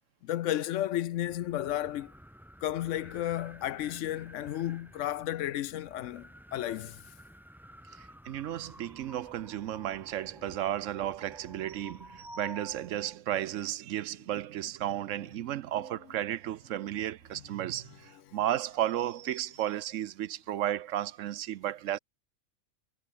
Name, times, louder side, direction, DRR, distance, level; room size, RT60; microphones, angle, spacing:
voice 1, 0.2-2.1 2.6-7.0 17.3-17.4 18.3-18.4, left 13 dB, 70° left, 0.9 m, -33 dB
sound 1, 1.1-13.2, equal, ahead, 1.6 m, -52 dB
voice 2, 8.0-22.0, right 12 dB, 70° right, 1.0 m, -34 dB
omnidirectional pair, 1.4 m